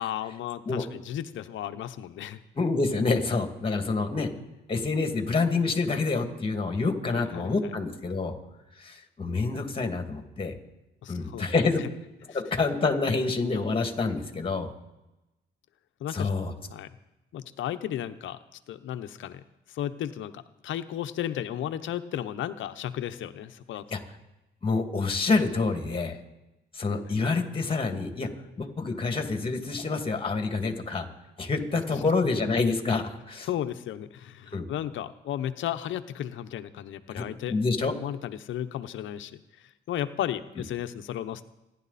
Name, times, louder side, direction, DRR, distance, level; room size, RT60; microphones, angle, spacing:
voice 1, 0.0-2.4 7.0-7.5 11.0-11.4 12.3-12.4 16.0-16.3 16.7-16.9 17.3-18.4 18.7-19.4 19.7-24.0 31.6-31.7 31.9-32.0 33.4-37.6 37.8-41.4, left 11 dB, 75° left, 10 dB, 0.9 m, -34 dB
voice 2, 2.6-4.3 4.7-8.4 8.8-10.6 11.1-11.8 12.3-14.7 16.1-16.5 23.9-24.0 24.6-26.2 26.7-28.3 28.6-31.1 31.4-33.5 34.5-34.7 37.2-37.9, left 3 dB, 25° left, 6 dB, 2.4 m, -27 dB
28.0 x 11.0 x 4.2 m, 0.98 s
cardioid pair, 90°, 20 cm